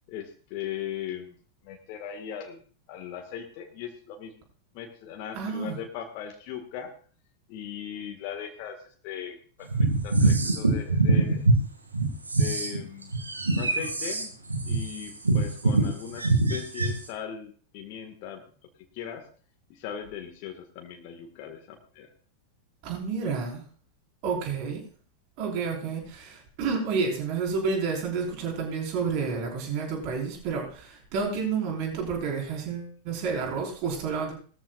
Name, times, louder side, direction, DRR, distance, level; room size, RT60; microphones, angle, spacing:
voice 1, 0.1-1.4 1.6-2.6 2.9-4.3 4.7-6.9 7.5-11.5 12.4-13.1 13.6-14.3 14.6-18.4 18.9-19.3 19.7-22.1, left 9 dB, 45° left, 3 dB, 1.9 m, -39 dB
voice 2, 5.3-5.8 22.8-23.6 24.2-24.8 25.4-34.3, right 5 dB, 45° right, 0 dB, 5.0 m, -30 dB
sound 1, 9.7-11.6 11.9-17.1, right 2 dB, 80° right, 2.1 m, -23 dB
20.0 x 14.0 x 2.5 m, 0.43 s
figure-of-eight pair, 90°, 0 cm